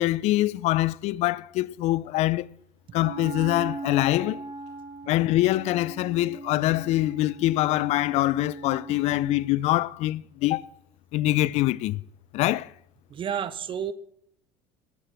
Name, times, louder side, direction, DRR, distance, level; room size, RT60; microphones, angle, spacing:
voice 1, 0.0-2.5 2.9-4.4 5.1-10.6 11.1-12.0 12.3-12.7, left 16 dB, 60° left, 0.4 m, -24 dB
Wind instrument woodwind instrument, 2.9-9.6, right 3 dB, 75° right, 2.6 m, -39 dB
voice 2, 13.1-13.9, right 8 dB, 40° right, 1.0 m, -30 dB
19.5 x 7.3 x 3.4 m
supercardioid pair, 85°, 13 cm